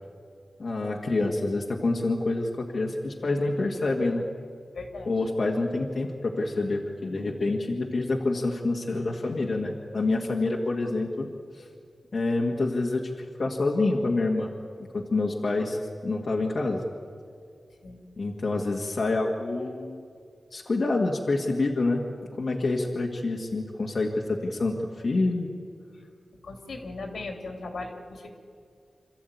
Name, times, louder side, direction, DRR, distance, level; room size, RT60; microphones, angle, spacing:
voice 1, 0.6-4.3 5.1-11.3 11.6-11.7 12.1-14.5 14.9-16.9 18.2-20.0 20.5-22.0 22.4-25.5, left 2 dB, 60° left, -1 dB, 1.9 m, -27 dB
voice 2, 4.7-5.1 17.8-18.0 26.4-28.3, left 3 dB, 85° left, 3 dB, 3.1 m, -37 dB
27.0 x 13.5 x 9.4 m, 2.3 s
wide cardioid pair, 85°, 0 cm